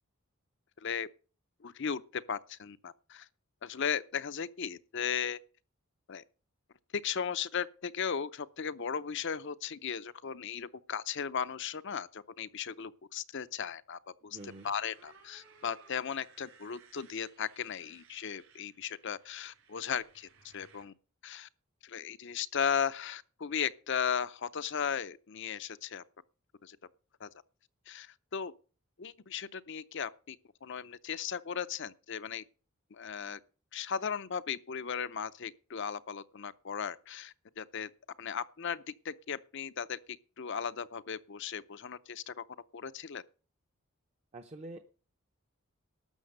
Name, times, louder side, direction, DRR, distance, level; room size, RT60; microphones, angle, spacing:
voice 1, 0.8-1.1 1.6-3.3 3.6-5.4 6.1-6.2 6.9-14.4 14.6-20.9 21.2-21.5 21.8-26.0 26.6-26.8 27.2-27.3 27.9-28.5 29.0-30.4 30.6-32.4 32.9-33.4 33.7-37.9 38.2-42.4 42.7-43.2, left 7 dB, 55° left, 0.6 m, -36 dB
voice 2, 14.3-14.7 44.3-44.8, right 2 dB, 30° right, 0.7 m, -46 dB
Motorcycle, 14.3-20.8, right 5 dB, 70° right, 4.4 m, -61 dB
12.5 x 7.0 x 6.5 m
head